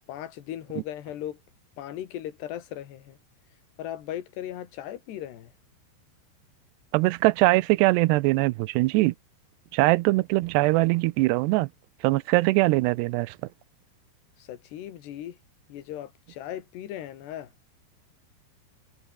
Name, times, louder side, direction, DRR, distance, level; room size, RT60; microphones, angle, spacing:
voice 1, 0.1-1.4 1.8-3.2 3.8-5.5 14.4-15.4 15.7-17.5, left 11 dB, 75° left, 4.2 m, -37 dB
voice 2, 6.9-9.1 9.7-11.7 12.0-13.4, right 21 dB, 80° right, 2.7 m, -22 dB
omnidirectional pair, 4.9 m